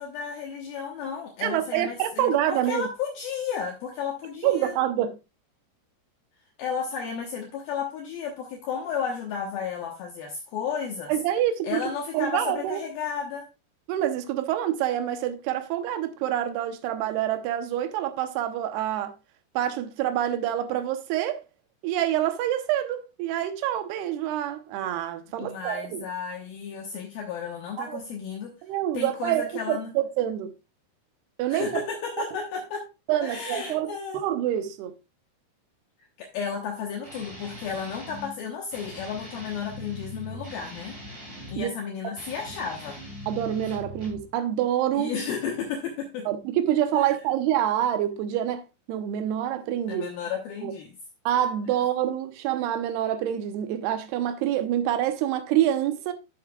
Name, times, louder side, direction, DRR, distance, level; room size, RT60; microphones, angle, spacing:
voice 1, 0.0-4.8 6.6-11.1 11.6-13.5 25.4-28.6 28.9-29.9 31.5-32.9 33.2-34.2 36.0-41.0 41.5-43.0 44.9-46.3 46.9-47.2 49.9-50.9, left 6 dB, 70° left, 2.6 m, -33 dB
voice 2, 1.4-2.9 4.4-5.2 11.1-11.8 12.1-12.8 13.9-19.1 19.6-21.4 21.8-26.0 27.9-28.0 28.6-30.5 31.4-31.8 33.1-34.9 41.6-41.7 43.3-45.1 46.3-50.1 50.6-50.7 51.3-56.1, right 11 dB, 75° right, 2.7 m, -26 dB
Guitar, 37.0-38.3 38.7-41.7 42.1-44.3, equal, 15° right, 2.1 m, -41 dB
11.0 x 7.1 x 2.3 m
omnidirectional pair, 5.0 m